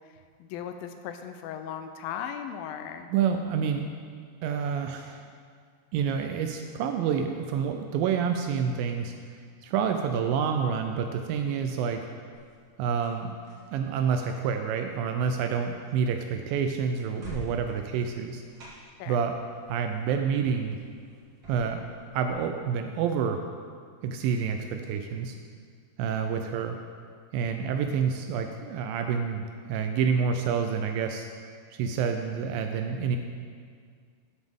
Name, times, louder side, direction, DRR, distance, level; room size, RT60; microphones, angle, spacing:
voice 1, 0.4-3.1 19.0-19.2, left 8 dB, 80° left, 7 dB, 2.2 m, -37 dB
voice 2, 3.1-3.9 4.4-5.2 5.9-9.1 9.6-12.0 12.8-13.3 13.7-18.4 19.1-19.4 19.7-20.8 21.5-23.4 24.0-25.4 26.0-26.8 27.3-29.4 29.7-31.3 31.7-33.2, right 6 dB, 85° right, 5 dB, 2.1 m, -28 dB
sound 1, 12.3-22.3, equal, 40° right, 1.8 m, -49 dB
13.0 x 7.3 x 3.5 m, 2.1 s
omnidirectional pair, 4.4 m